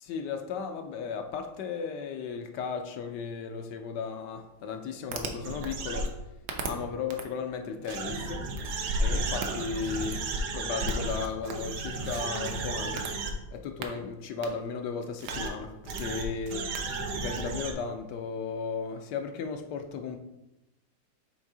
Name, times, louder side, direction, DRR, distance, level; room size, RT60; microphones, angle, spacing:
voice 1, 0.0-6.1 6.6-8.4 9.0-10.2 10.5-13.1 13.5-16.6 17.1-20.2, left 5 dB, 70° left, 6 dB, 1.2 m, -35 dB
sound 1, 5.1-6.1 6.5-6.7 7.1-7.2 7.8-13.3 13.8-13.9 14.4-14.5 15.2-15.5 15.8-17.7, right 2 dB, 65° right, 1.2 m, -32 dB
6.4 x 3.4 x 4.8 m, 0.94 s
omnidirectional pair, 2.0 m